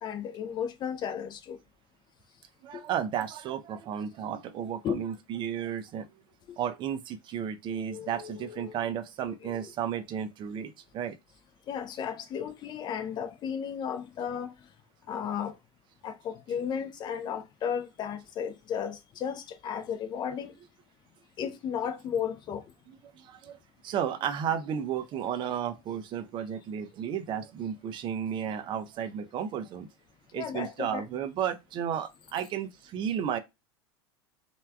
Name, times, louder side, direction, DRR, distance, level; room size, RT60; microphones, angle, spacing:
voice 1, 0.0-1.6 2.7-2.8 4.8-5.1 6.5-6.6 7.7-8.8 9.4-9.7 11.7-14.5 15.1-15.5 16.0-20.5 21.4-22.6 30.3-31.0, left 8 dB, 30° left, 0.5 m, -34 dB
voice 2, 2.6-6.1 6.6-11.2 23.2-23.6 23.8-29.9 30.3-33.4, right 9 dB, 35° right, 0.4 m, -33 dB
3.2 x 2.2 x 2.2 m
hypercardioid pair, 85°, 14 cm